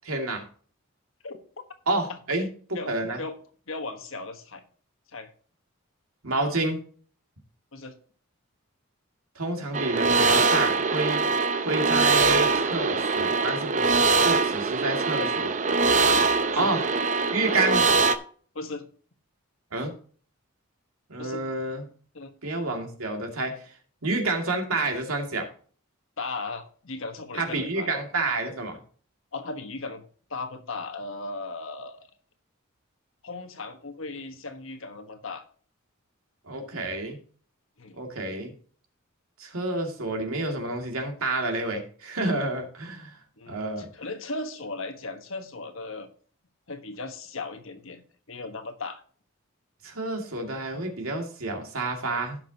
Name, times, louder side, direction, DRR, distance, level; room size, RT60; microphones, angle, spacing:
voice 1, 0.0-0.4 1.9-2.5 2.8-3.2 6.2-6.8 9.4-11.2 11.6-15.5 16.5-16.8 17.3-17.8 19.7-19.9 21.1-21.9 22.4-23.6 24.0-25.5 27.3-28.8 36.5-37.2 38.0-38.5 39.4-43.2 43.5-43.9 49.8-52.4, right 2 dB, 90° right, 3 dB, 2.4 m, -29 dB
voice 2, 3.7-4.6 5.1-5.3 7.7-8.0 16.5-16.7 18.5-18.9 21.2-21.4 22.1-22.3 26.2-27.9 29.3-30.0 30.3-32.1 33.2-35.4 37.8-38.0 43.4-46.1 46.7-48.0 48.3-49.0, left 3 dB, 65° left, 6 dB, 1.3 m, -37 dB
sound 1, 9.7-18.2, right 4 dB, 35° right, 0.6 m, -23 dB
16.0 x 6.2 x 2.9 m, 0.43 s
head